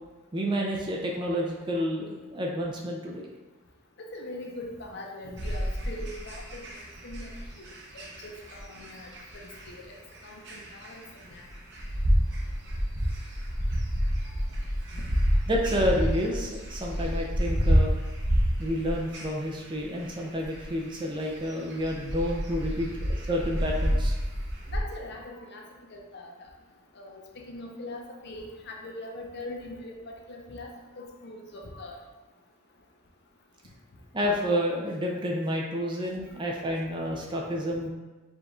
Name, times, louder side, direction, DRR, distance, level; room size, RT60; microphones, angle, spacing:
voice 1, 0.3-3.3 15.5-17.9 18.6-24.2 34.1-37.9, equal, 20° right, -1 dB, 0.5 m, -29 dB
voice 2, 4.1-6.7 7.0-7.3 7.9-9.1 9.3-10.0 10.2-11.4 15.0-15.1 22.8-22.9 24.7-25.6 25.9-26.3 27.0-30.0 30.3-30.7 31.0-32.0, left 2 dB, 50° left, 0 dB, 0.6 m, -41 dB
sound 1, 5.4-24.8, equal, 55° right, 0.8 m, -29 dB
5.0 x 2.4 x 3.7 m, 1.2 s
head